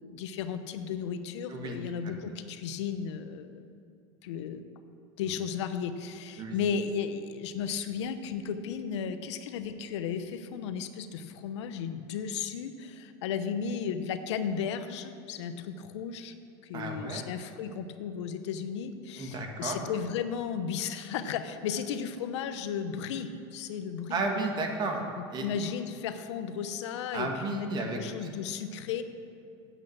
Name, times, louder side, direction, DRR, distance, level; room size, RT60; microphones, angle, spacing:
voice 1, 0.0-3.6 4.2-4.6 5.2-16.3 16.6-24.2 25.2-29.0, left 7 dB, 80° left, 10 dB, 0.9 m, -34 dB
voice 2, 16.7-17.2 19.2-19.8 24.1-25.0 25.3-25.5 27.1-28.0, right 3 dB, 30° right, 3 dB, 1.6 m, -33 dB
8.8 x 8.2 x 7.7 m, 2.6 s
supercardioid pair, 145°, 14 cm